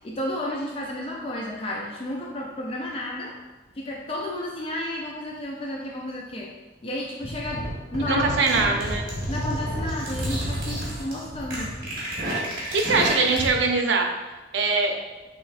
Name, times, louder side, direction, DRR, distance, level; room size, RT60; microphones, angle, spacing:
voice 1, 0.0-3.3 3.7-6.5 6.8-8.7 9.3-11.8, left 1 dB, 30° left, -2 dB, 0.4 m, -32 dB
sound 1, 7.2-13.6, equal, 50° right, 1.3 m, -30 dB
voice 2, 8.1-9.1 12.7-14.1 14.5-15.0, right 3 dB, 80° right, 3 dB, 0.6 m, -22 dB
6.1 x 3.0 x 2.5 m, 1.2 s
head